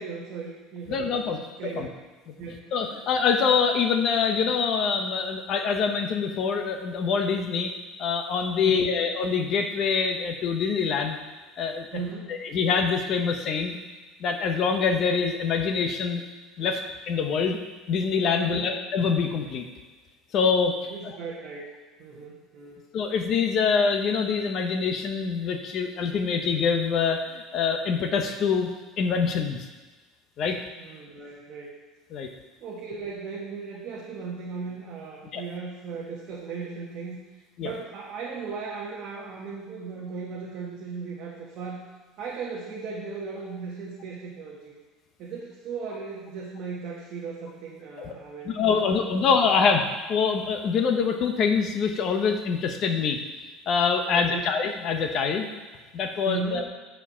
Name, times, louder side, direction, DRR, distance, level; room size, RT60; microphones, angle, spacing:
voice 1, 0.0-1.9 2.4-2.8 8.6-9.0 11.9-12.3 18.3-18.7 20.9-21.7 22.0-22.8 30.8-31.7 32.6-41.9 42.2-44.7 45.2-49.1 54.1-54.4 56.2-56.7, right 4 dB, 40° right, -3 dB, 1.2 m, -37 dB
voice 2, 0.9-1.4 1.8-1.9 2.7-7.7 8.0-11.2 11.6-11.9 12.3-13.8 14.2-16.2 16.6-17.6 17.9-19.7 20.3-20.9 22.9-28.7 29.0-29.7 30.4-30.6 32.1-32.3 35.3-35.4 37.6-37.7 48.0-48.1 48.4-53.2 53.7-55.5 55.9-56.6, left 5 dB, 35° left, 5 dB, 0.7 m, -25 dB
9.7 x 4.5 x 5.6 m, 1.3 s
cardioid pair, 175°, 0 cm